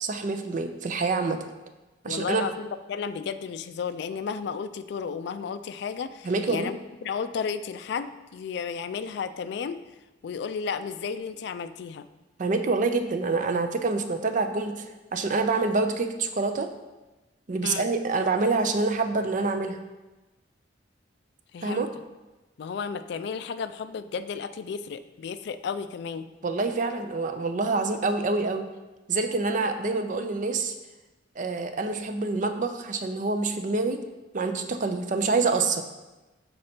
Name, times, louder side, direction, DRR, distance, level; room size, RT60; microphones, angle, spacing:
voice 1, 0.0-1.4 2.0-2.5 6.2-6.7 12.4-16.7 17.5-19.8 21.6-21.9 26.4-28.7 29.1-30.7 31.4-34.0 34.3-35.8, right 3 dB, 45° right, 7 dB, 0.5 m, -26 dB
voice 2, 2.1-9.8 10.2-12.1 17.6-17.9 21.5-21.9 22.6-26.3, left 6 dB, 65° left, 11 dB, 0.3 m, -33 dB
6.5 x 4.2 x 4.3 m, 1.1 s
head